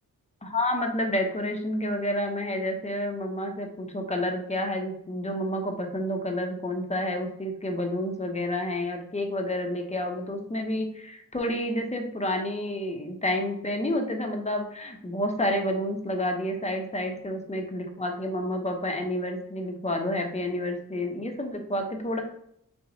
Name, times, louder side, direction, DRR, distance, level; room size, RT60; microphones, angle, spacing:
voice 1, 0.4-22.2, left 1 dB, 20° left, 3 dB, 0.8 m, -29 dB
3.4 x 3.0 x 4.0 m, 0.72 s
wide cardioid pair, 90°, 34 cm